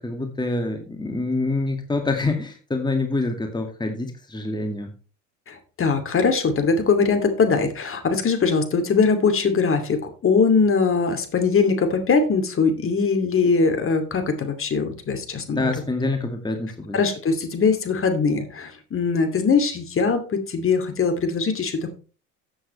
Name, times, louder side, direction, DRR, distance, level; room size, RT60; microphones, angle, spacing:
voice 1, 0.0-4.9 15.5-17.0, left 2 dB, 10° left, 4 dB, 2.2 m, -26 dB
voice 2, 5.5-15.7 16.9-21.9, left 5 dB, 35° left, 8 dB, 2.6 m, -21 dB
14.0 x 8.0 x 3.3 m, 0.35 s
hypercardioid pair, 65°, 38 cm